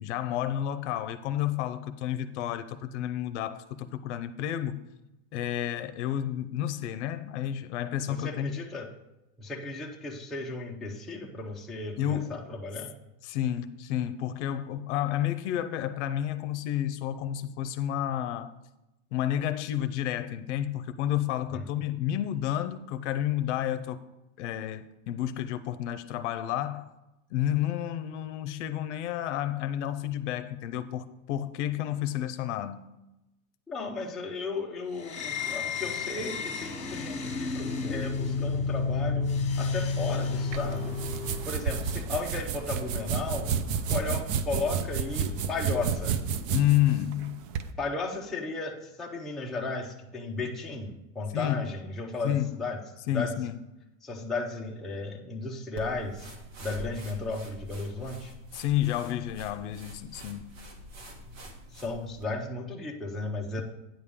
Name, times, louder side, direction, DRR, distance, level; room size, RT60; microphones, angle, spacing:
voice 1, 0.0-4.8 5.3-8.6 12.0-12.4 13.2-18.5 19.1-24.0 24.4-26.9 27.3-32.9 46.5-47.4 51.3-51.7 52.2-52.6 53.1-53.6 58.5-60.6, left 12 dB, 60° left, 0.7 m, -30 dB
voice 2, 8.1-8.9 9.4-12.9 21.5-21.6 33.7-39.3 39.6-41.0 41.5-43.5 43.9-46.2 47.8-52.8 53.1-53.3 54.0-56.3 56.6-58.3 61.7-63.6, left 3 dB, ahead, 0.5 m, -35 dB
sound 1, 35.0-41.6, left 4 dB, 15° left, 1.3 m, -31 dB
sound 2, 40.5-47.7, right 6 dB, 45° right, 0.5 m, -31 dB
sound 3, 55.8-62.3, equal, 75° right, 1.8 m, -46 dB
9.3 x 6.7 x 3.6 m
supercardioid pair, 140°, 39 cm